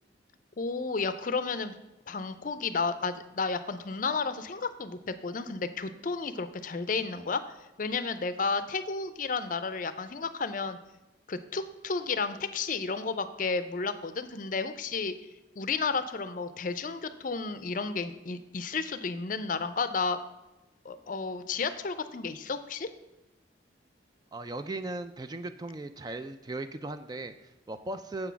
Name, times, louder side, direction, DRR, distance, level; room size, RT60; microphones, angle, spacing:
voice 1, 0.6-1.7 2.1-7.4 7.8-10.8 11.3-15.1 15.6-20.2 20.8-22.9, left 4 dB, 45° left, 12 dB, 0.5 m, -32 dB
voice 2, 24.3-28.3, right 2 dB, 20° right, 10 dB, 0.3 m, -38 dB
7.6 x 6.1 x 5.7 m, 0.99 s
head